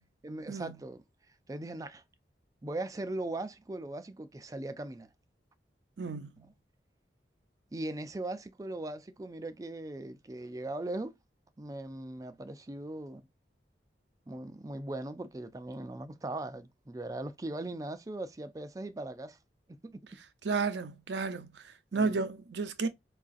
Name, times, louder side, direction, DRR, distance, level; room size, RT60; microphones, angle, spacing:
voice 1, 0.2-1.0 1.5-2.0 2.6-5.1 7.7-11.1 11.6-13.3 14.3-19.4 19.8-20.0 21.9-22.2, right 2 dB, 20° right, 0.4 m, -39 dB
voice 2, 6.0-6.5 20.4-22.9, right 4 dB, 80° right, 0.6 m, -33 dB
4.7 x 2.4 x 2.5 m
head